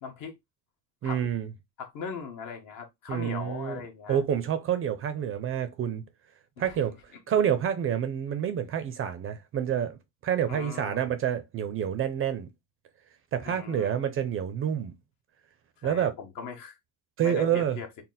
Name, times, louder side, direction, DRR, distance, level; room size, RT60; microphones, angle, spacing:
voice 1, 0.0-0.4 1.0-1.2 1.8-4.2 6.6-6.8 10.5-11.1 13.4-13.9 15.8-16.8 17.2-17.9, left 6 dB, 55° left, 1.3 m, -39 dB
voice 2, 1.0-1.5 3.1-3.8 4.1-6.0 6.6-7.0 7.3-12.5 13.3-14.9 15.8-16.1 17.2-17.8, right 9 dB, 35° right, 0.4 m, -28 dB
4.1 x 2.1 x 3.9 m
cardioid pair, 150°, 39 cm